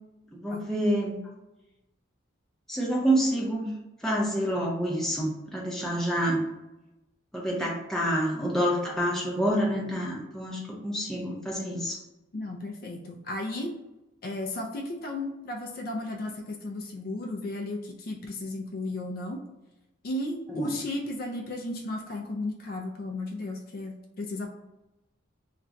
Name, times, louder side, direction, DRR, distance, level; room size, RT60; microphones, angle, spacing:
voice 1, 0.3-1.2 2.7-3.7 4.0-6.4 7.3-12.0 20.5-20.8, right 1 dB, ahead, -4 dB, 0.6 m, -28 dB
voice 2, 12.3-13.8 14.2-19.4 20.0-24.5, left 2 dB, 50° left, 1 dB, 0.4 m, -34 dB
2.4 x 2.2 x 3.8 m, 0.97 s
head